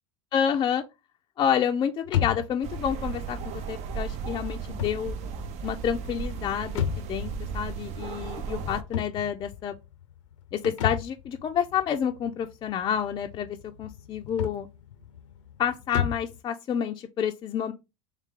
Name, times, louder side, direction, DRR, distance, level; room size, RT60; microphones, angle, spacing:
voice 1, 0.3-0.8 1.4-5.2 5.6-9.8 10.5-14.7 15.6-17.7, left 8 dB, 30° left, 0.4 m, -29 dB
sound 1, 2.0-16.4, left 10 dB, 80° left, 0.6 m, -35 dB
sound 2, 2.6-8.8, right 6 dB, 45° right, 0.5 m, -35 dB
3.3 x 3.2 x 3.5 m
hypercardioid pair, 90°, 15 cm